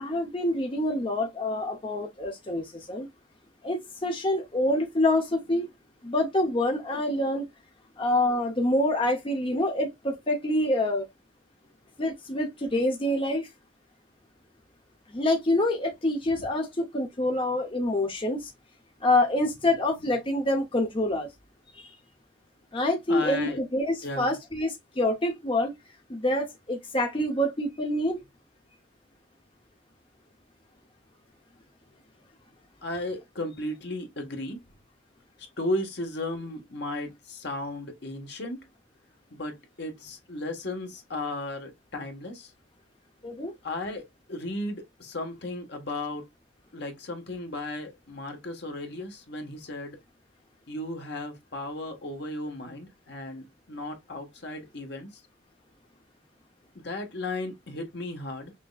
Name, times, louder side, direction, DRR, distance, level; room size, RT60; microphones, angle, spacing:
voice 1, 0.0-3.1 3.6-5.7 6.0-7.4 8.0-11.1 12.0-13.5 15.1-18.5 19.0-21.3 21.7-22.0 22.7-25.7 26.1-28.2 43.2-43.5, left 1 dB, 30° left, 0.8 m, -26 dB
voice 2, 23.1-23.6 24.0-24.4 32.8-34.6 35.4-38.6 39.3-42.5 43.6-46.3 46.7-50.0 50.7-55.2 56.7-58.5, left 1 dB, 60° left, 1.4 m, -35 dB
6.1 x 2.9 x 2.4 m
head